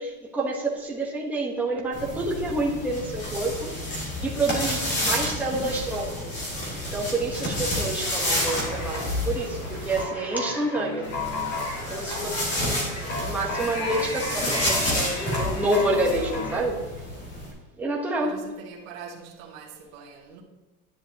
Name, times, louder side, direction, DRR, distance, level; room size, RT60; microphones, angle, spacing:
voice 1, 0.0-6.3 6.9-11.1 11.9-12.4 12.8-12.9 13.2-16.8 17.8-18.4, right 2 dB, 5° right, -3 dB, 1.0 m, -28 dB
sound 1, 1.9-10.0 11.0-17.5, left 1 dB, 25° left, 2.3 m, -30 dB
sound 2, 8.0-16.6, left 2 dB, 45° left, 3.3 m, -33 dB
voice 2, 12.5-13.2 18.2-20.4, right 6 dB, 65° right, -2 dB, 1.9 m, -44 dB
10.5 x 10.0 x 2.8 m, 1.1 s
supercardioid pair, 170°, 44 cm